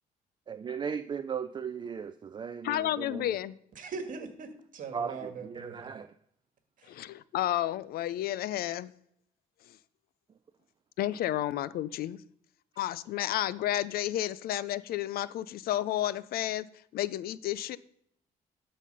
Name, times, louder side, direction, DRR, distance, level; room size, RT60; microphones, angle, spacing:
voice 1, 0.5-3.4 4.9-6.1, right 6 dB, 30° right, 0.4 m, -37 dB
voice 2, 2.6-3.5 6.9-8.9 11.0-12.2 12.8-16.7 16.9-17.8, left 13 dB, 65° left, 0.4 m, -31 dB
voice 3, 3.8-5.9 6.8-6.9, right 5 dB, 50° right, 1.7 m, -41 dB
12.5 x 4.1 x 5.4 m
cardioid pair, 110°, 17 cm